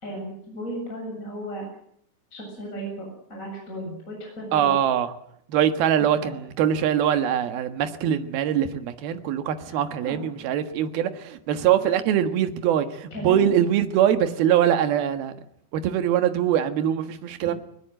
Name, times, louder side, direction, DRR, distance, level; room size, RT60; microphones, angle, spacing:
voice 1, 0.0-1.6 2.3-4.7 10.0-10.2 13.1-13.5, equal, 20° left, 7.9 m, -35 dB
voice 2, 4.5-5.1 5.5-15.3 15.7-17.5, right 10 dB, 70° right, 3.3 m, -23 dB
22.0 x 20.5 x 7.7 m
omnidirectional pair, 4.7 m